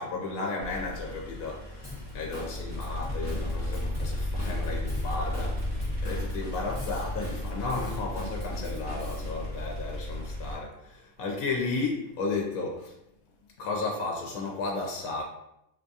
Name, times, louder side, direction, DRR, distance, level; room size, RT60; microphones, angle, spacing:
voice 1, 0.0-13.0 13.4-15.2, left 3 dB, 85° left, 0 dB, 1.0 m, -34 dB
sound 1, 0.6-10.5, left 1 dB, 30° right, 0.8 m, -34 dB
Drum kit / Drum, 1.8-9.3, left 1 dB, 15° left, 0.8 m, -44 dB
4.3 x 2.3 x 2.6 m, 0.84 s
omnidirectional pair, 1.5 m